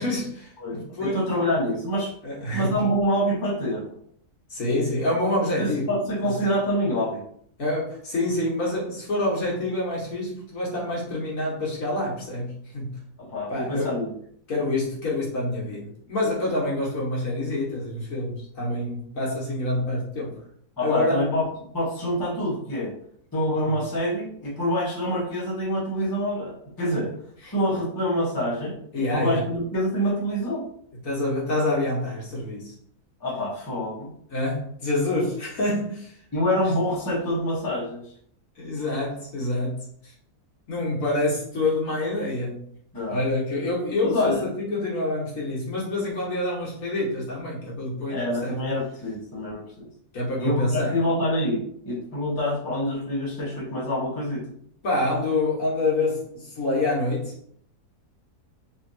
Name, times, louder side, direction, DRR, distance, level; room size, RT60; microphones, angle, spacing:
voice 1, 0.0-1.5 2.2-2.9 4.5-5.9 6.2-6.4 7.6-12.9 13.5-13.9 14.5-20.4 20.8-21.2 23.6-23.7 27.4-27.5 28.9-29.4 31.0-32.7 34.3-36.1 38.6-40.1 40.7-42.7 43.1-48.6 50.1-51.0 54.8-57.5, left 2 dB, 60° left, -5 dB, 1.4 m, -27 dB
voice 2, 0.6-2.1 2.5-3.9 5.6-7.2 13.2-14.1 20.8-21.5 21.7-23.0 23.3-27.1 27.5-30.7 33.2-34.1 36.3-38.0 42.9-43.2 44.0-44.4 48.1-49.9 50.4-54.5, equal, 20° left, -5 dB, 0.7 m, -26 dB
3.3 x 2.8 x 2.6 m, 0.65 s
omnidirectional pair, 1.7 m